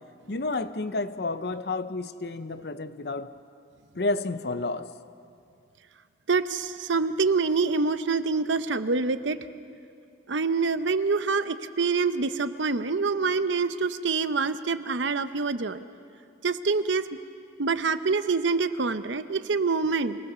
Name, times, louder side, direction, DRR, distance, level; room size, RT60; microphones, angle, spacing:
voice 1, 0.3-3.3 3.9-4.9, left 2 dB, 55° left, 12 dB, 0.7 m, -30 dB
voice 2, 6.3-9.4 10.3-15.8 16.4-17.0 17.6-20.2, right 4 dB, 80° right, 12 dB, 0.8 m, -26 dB
26.0 x 19.0 x 6.8 m, 2.4 s
head